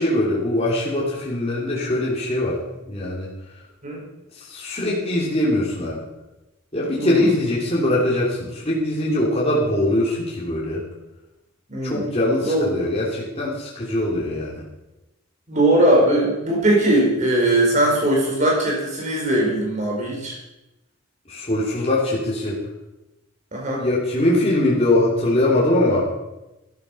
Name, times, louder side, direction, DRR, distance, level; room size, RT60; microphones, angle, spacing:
voice 1, 0.0-2.6 2.9-3.3 4.4-6.0 6.7-10.8 11.8-14.6 21.3-22.6 23.7-26.1, left 1 dB, 30° left, -5 dB, 3.0 m, -22 dB
voice 2, 6.9-7.3 11.7-12.1 12.4-12.6 15.5-20.4 23.5-23.8, right 1 dB, 35° right, -2 dB, 4.9 m, -20 dB
13.5 x 11.5 x 5.6 m, 0.98 s
head